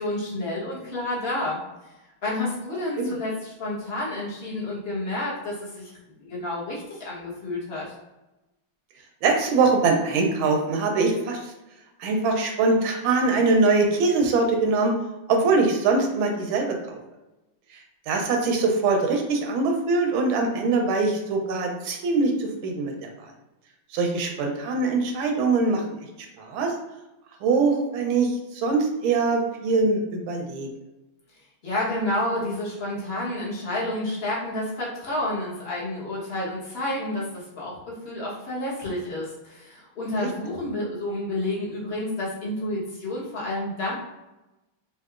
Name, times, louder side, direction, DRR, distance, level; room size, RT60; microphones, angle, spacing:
voice 1, 0.0-1.6 2.2-5.9 6.2-7.9 31.6-44.0, left 1 dB, 35° left, -7 dB, 1.1 m, -30 dB
voice 2, 9.2-11.5 12.0-14.9 15.3-17.0 18.1-23.3 23.9-25.9 26.4-26.7 27.4-30.7 40.2-40.3, right 3 dB, 85° right, 2 dB, 1.4 m, -23 dB
4.5 x 2.3 x 2.4 m, 1.0 s
omnidirectional pair, 2.2 m